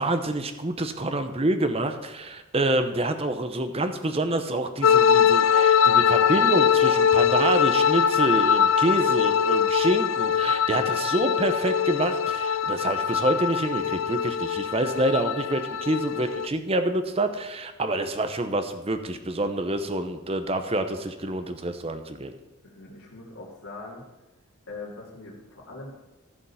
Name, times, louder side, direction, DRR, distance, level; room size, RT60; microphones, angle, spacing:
voice 1, 0.0-22.3, right 1 dB, 30° right, 8 dB, 0.8 m, -27 dB
sound 1, 4.8-16.5, left 7 dB, 70° left, 0.4 m, -22 dB
voice 2, 22.6-24.0 24.7-25.9, left 3 dB, 90° left, -4 dB, 2.6 m, -41 dB
14.5 x 5.2 x 5.6 m, 1.1 s
head